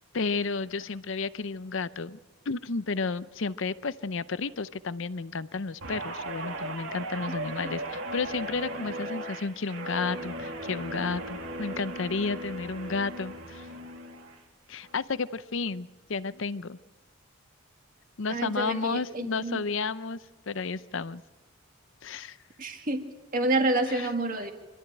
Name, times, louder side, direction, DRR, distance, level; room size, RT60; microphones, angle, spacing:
voice 1, 0.1-2.2 2.5-13.7 14.7-16.8 18.2-20.2 20.5-21.2 22.0-22.4 23.9-24.1, left 4 dB, 60° left, 15 dB, 0.6 m, -32 dB
Guitar, 5.8-14.4 14.8-15.1, right 1 dB, 65° right, 2.4 m, -37 dB
voice 2, 18.3-19.6 22.6-23.0 23.3-24.5, right 2 dB, 40° right, 4 dB, 2.0 m, -28 dB
25.5 x 13.0 x 9.1 m, 1.2 s
head